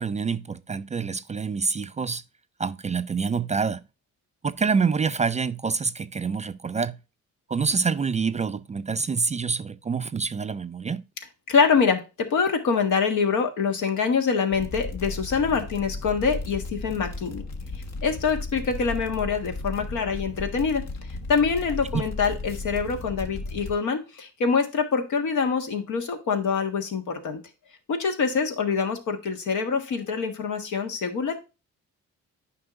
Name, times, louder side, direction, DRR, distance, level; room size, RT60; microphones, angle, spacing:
voice 1, 0.0-2.2 2.6-3.8 4.4-7.0 7.5-11.0 21.9-22.0, right 5 dB, 25° right, 0.3 m, -26 dB
voice 2, 11.5-17.4 18.0-20.9 21.3-27.4 27.9-31.4, left 5 dB, 75° left, 1.6 m, -25 dB
sound 1, 14.5-23.7, left 2 dB, 60° left, 1.4 m, -35 dB
9.4 x 5.5 x 2.5 m
cardioid pair, 90°, 30 cm